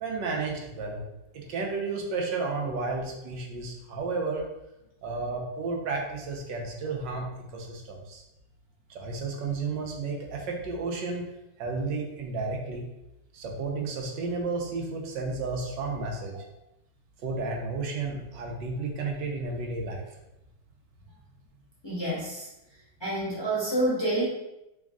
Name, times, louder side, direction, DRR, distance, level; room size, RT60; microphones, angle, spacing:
voice 1, 0.0-1.0 1.3-4.5 5.0-7.3 7.5-8.2 8.9-11.3 11.6-12.9 13.3-16.3 17.2-20.1, right 3 dB, 80° right, 1 dB, 1.4 m, -32 dB
voice 2, 21.8-22.5 23.0-24.2, right 1 dB, 20° left, -7 dB, 0.9 m, -28 dB
3.6 x 3.1 x 3.5 m, 0.90 s
omnidirectional pair, 2.0 m